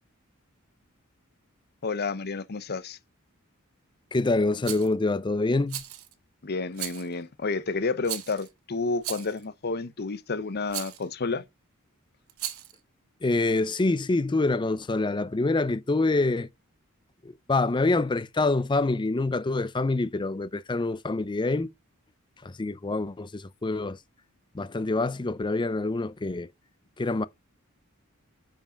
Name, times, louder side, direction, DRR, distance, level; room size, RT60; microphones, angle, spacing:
voice 1, 1.8-3.0 6.4-11.4, left 3 dB, 50° left, 0.8 m, -30 dB
voice 2, 4.1-5.8 13.2-16.5 17.2-21.7 22.4-24.0 24.5-26.5 27.0-27.3, left 2 dB, 20° left, 0.5 m, -26 dB
Rattle, 4.6-4.9 5.7-6.1 6.7-7.1 8.0-8.5 9.0-9.4 10.7-11.0 12.3-12.8, right 12 dB, 70° right, 1.0 m, -36 dB
7.6 x 5.2 x 5.1 m
head